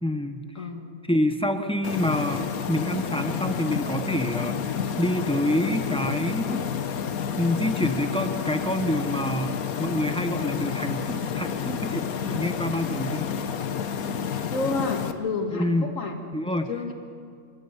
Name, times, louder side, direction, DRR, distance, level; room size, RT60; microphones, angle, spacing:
voice 1, 0.0-0.4 1.1-4.6 5.0-6.7 7.4-13.3 15.5-15.9 16.3-16.7, left 1 dB, 5° left, 6 dB, 1.0 m, -27 dB
voice 2, 0.6-0.9 14.5-16.2 16.5-16.9, left 3 dB, 60° left, 4 dB, 2.3 m, -30 dB
sound 1, 1.8-15.1, left 7 dB, 75° left, 1.4 m, -30 dB
27.0 x 13.0 x 8.2 m, 2.2 s
omnidirectional pair, 1.5 m